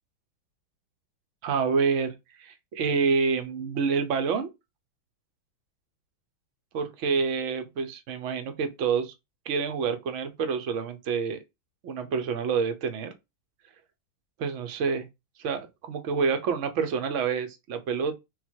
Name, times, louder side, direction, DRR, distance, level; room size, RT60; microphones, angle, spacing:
voice 1, 1.4-2.1 2.4-4.5 6.7-9.1 9.5-11.4 11.8-13.1 14.4-15.1 15.4-18.2, right 5 dB, 65° right, 0.7 m, -27 dB
3.8 x 2.3 x 4.4 m
omnidirectional pair, 2.0 m